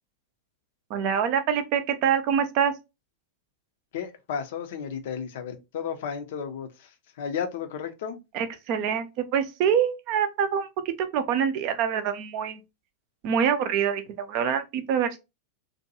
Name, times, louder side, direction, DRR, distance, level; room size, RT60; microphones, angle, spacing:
voice 1, 0.9-2.7 8.3-12.6 13.2-15.2, right 8 dB, 45° right, 0.4 m, -25 dB
voice 2, 3.9-6.9 7.2-8.2, left 7 dB, 55° left, 0.4 m, -33 dB
2.6 x 2.2 x 2.7 m
figure-of-eight pair, 90°, 0 cm